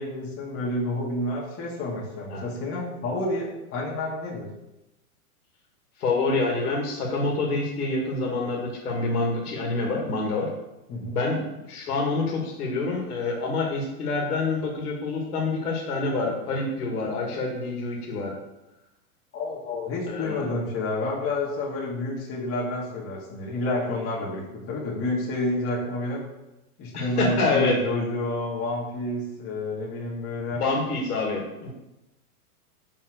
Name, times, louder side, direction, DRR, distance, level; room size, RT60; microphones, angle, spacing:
voice 1, 0.0-4.5 10.9-11.1 19.3-26.3 26.8-30.6, left 1 dB, 30° left, -4 dB, 2.2 m, -29 dB
voice 2, 6.0-10.5 11.1-18.3 20.1-20.5 26.9-27.8 30.6-31.7, left 3 dB, 75° left, -1 dB, 2.3 m, -27 dB
5.8 x 4.6 x 6.3 m, 0.96 s
hypercardioid pair, 125°, 45 cm